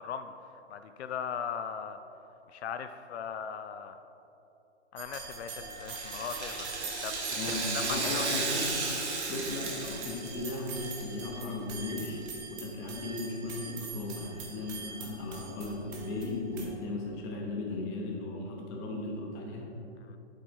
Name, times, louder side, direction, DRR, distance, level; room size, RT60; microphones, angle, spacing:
voice 1, 0.0-2.0 2.5-4.0 4.9-7.4 7.7-8.4 20.0-20.2, left 7 dB, 75° left, 9 dB, 0.5 m, -39 dB
sound 1, 5.0-16.7, right 4 dB, 20° right, 0.6 m, -44 dB
Rattle (instrument), 5.8-11.0 11.3-11.4 12.3-12.4, right 3 dB, 80° right, 1.6 m, -34 dB
voice 2, 7.3-8.9 9.3-19.8, left 2 dB, 20° left, 0 dB, 0.9 m, -36 dB
7.6 x 4.7 x 4.4 m, 3.0 s
hypercardioid pair, 150°, 34 cm